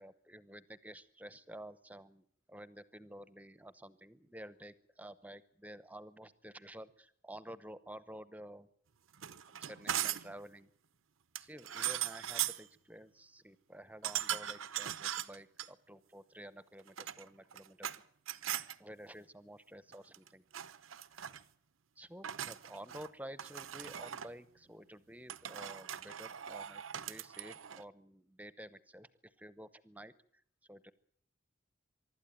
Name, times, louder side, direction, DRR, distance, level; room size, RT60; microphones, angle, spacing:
voice 1, 0.0-8.7 9.5-10.7 11.4-18.0 18.8-20.4 22.0-30.9, right 1 dB, 10° right, 15 dB, 0.8 m, -51 dB
sound 1, 9.1-10.4 11.4-12.7 14.0-15.7 16.8-18.0 18.3-18.8 19.9-20.3 20.5-21.4 22.2-23.1 23.4-24.3 25.3-27.8, right 11 dB, 85° right, 0.8 m, -39 dB
24.0 x 12.5 x 9.1 m, 0.65 s
head